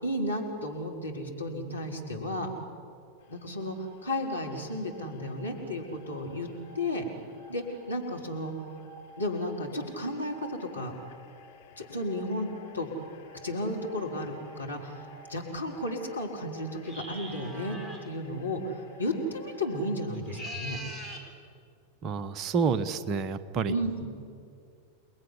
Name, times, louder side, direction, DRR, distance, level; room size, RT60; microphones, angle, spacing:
voice 1, 0.0-2.5 3.3-6.5 6.7-7.1 7.5-8.5 9.2-10.9 11.8-12.5 12.7-12.9 13.4-17.8 18.0-20.8 23.7-24.1, left 1 dB, 80° left, 0 dB, 4.2 m, -33 dB
sound 1, 3.2-20.0, equal, 55° left, 3.5 m, -52 dB
sound 2, 16.8-18.1 20.1-21.3, equal, 5° right, 4.2 m, -41 dB
voice 2, 22.0-23.8, right 5 dB, 35° right, 11 dB, 1.3 m, -29 dB
29.5 x 20.0 x 9.9 m, 2.3 s
figure-of-eight pair, 90°, 0 cm